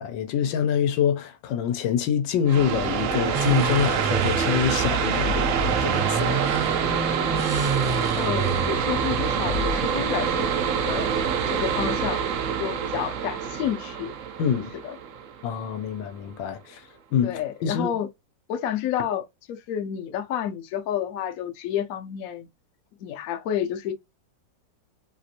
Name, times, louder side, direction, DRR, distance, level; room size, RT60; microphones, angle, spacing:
voice 1, 0.0-6.4 14.4-14.7 15.4-17.9, left 8 dB, 85° left, 1.3 m, -26 dB
sound 1, 2.5-15.8, right 7 dB, 80° right, 0.7 m, -26 dB
sound 2, 3.3-11.7, right 3 dB, 30° right, 0.7 m, -30 dB
voice 2, 8.2-11.1 11.5-12.3 12.6-14.1 14.8-15.0 17.2-18.1 18.5-22.5 23.0-23.9, left 10 dB, 65° left, 0.9 m, -30 dB
3.2 x 2.5 x 2.7 m
omnidirectional pair, 2.0 m